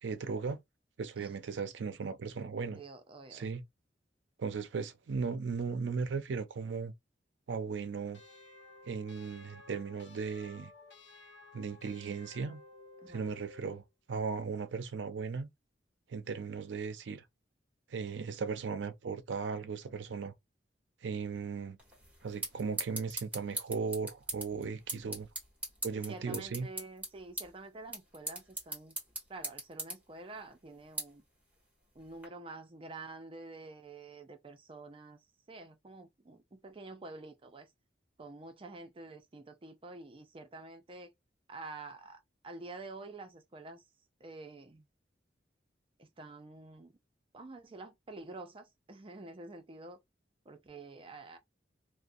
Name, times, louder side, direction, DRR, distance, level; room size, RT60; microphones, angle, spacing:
voice 1, 0.0-0.6 1.0-2.8 3.3-3.6 4.4-6.9 7.5-8.2 8.8-10.7 11.5-12.6 13.1-13.8 14.1-15.5 16.1-17.2 17.9-20.3 21.0-21.8 22.2-25.3 25.8-26.7, right 5 dB, 85° right, 0.5 m, -37 dB
voice 2, 2.7-3.5 13.0-13.3 26.0-28.9 29.3-31.2 31.9-35.2 35.5-37.7 38.2-41.1 41.5-43.8 44.2-44.9 46.0-46.9 47.3-50.0 50.5-51.4, right 3 dB, 30° right, 0.5 m, -48 dB
sound 1, 8.1-13.9, left 3 dB, 85° left, 0.8 m, -54 dB
sound 2, 21.8-32.3, right 2 dB, 10° right, 1.1 m, -43 dB
2.4 x 2.1 x 2.5 m
head